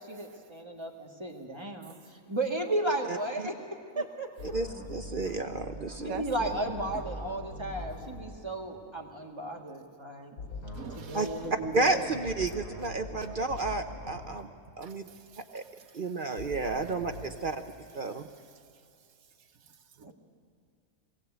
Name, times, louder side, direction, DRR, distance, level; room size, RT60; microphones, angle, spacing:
voice 1, 0.0-4.5 6.0-10.4 11.0-12.3 20.1-20.2, right 1 dB, 20° right, 0 dB, 2.0 m, -34 dB
sound 1, 4.4-8.2 10.4-14.2 16.4-17.2, left 1 dB, 90° left, 3.9 m, -42 dB
voice 2, 4.5-6.1 11.1-11.3 11.7-14.5 14.8-15.1 15.5-15.6 15.9-17.6 17.9-18.2, right 3 dB, 45° right, 7 dB, 0.8 m, -31 dB
voice 3, 6.0-6.6 10.7-11.5 14.1-14.4 14.8-16.0 16.4-16.5 18.1-18.2 19.6-20.1, right 7 dB, 70° right, 8 dB, 1.4 m, -45 dB
22.0 x 17.5 x 8.1 m, 2.6 s
omnidirectional pair, 1.6 m